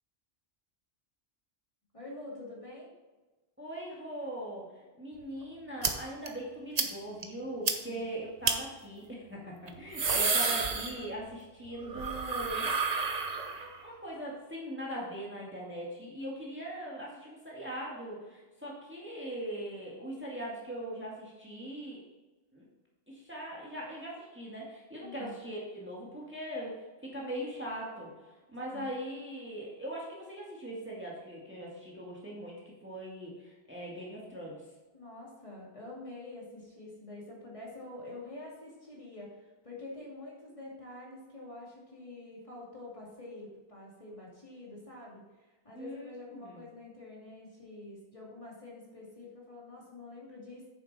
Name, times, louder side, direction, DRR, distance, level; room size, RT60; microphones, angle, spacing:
voice 1, 1.9-2.9 7.8-8.1 25.0-25.4 28.6-28.9 34.9-50.7, left 2 dB, 30° left, -5 dB, 2.6 m, -47 dB
voice 2, 3.6-22.0 22.5-22.7 23.1-28.1 28.5-34.6 45.7-46.6, right 1 dB, 10° right, -4 dB, 2.0 m, -41 dB
sound 1, 5.8-5.9 6.3-6.4 6.8-6.9 7.2-7.3 7.7-7.8 8.4-8.6 9.7-11.3 11.6-13.8, right 4 dB, 40° right, 0.9 m, -30 dB
9.0 x 7.1 x 4.2 m, 1.2 s
omnidirectional pair, 1.0 m